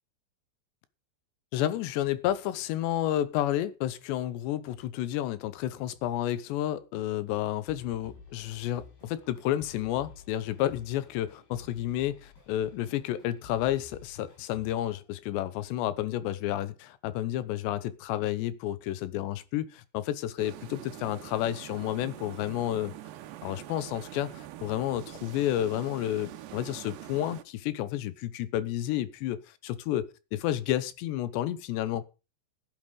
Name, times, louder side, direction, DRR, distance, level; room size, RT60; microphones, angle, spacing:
voice 1, 1.5-22.9 23.4-32.0, left 13 dB, 80° left, 3.2 m, -31 dB
sound 1, 7.7-15.0, left 5 dB, 65° left, 9.7 m, -52 dB
sound 2, 20.4-27.4, right 13 dB, 85° right, 3.2 m, -44 dB
15.5 x 9.0 x 5.3 m
omnidirectional pair, 5.0 m